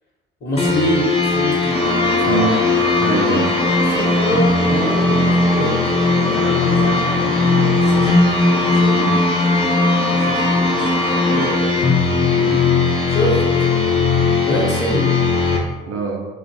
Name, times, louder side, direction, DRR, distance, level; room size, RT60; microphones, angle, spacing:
voice 1, 0.4-1.9 2.2-2.5 3.9-5.7 6.1-8.3 8.6-8.9 10.1-11.9 13.1-13.4 14.4-15.1, equal, 35° left, -3 dB, 0.9 m, -25 dB
sound 1, 0.6-15.6, left 3 dB, 20° left, 0.5 m, -18 dB
sound 2, 1.7-11.5, equal, 70° left, 0.7 m, -25 dB
voice 2, 2.3-2.7 3.0-3.6 8.9-9.3 12.3-12.7 15.9-16.3, right 5 dB, 50° right, 0 dB, 0.5 m, -24 dB
2.5 x 2.1 x 2.6 m, 1.3 s
figure-of-eight pair, 45°, 30 cm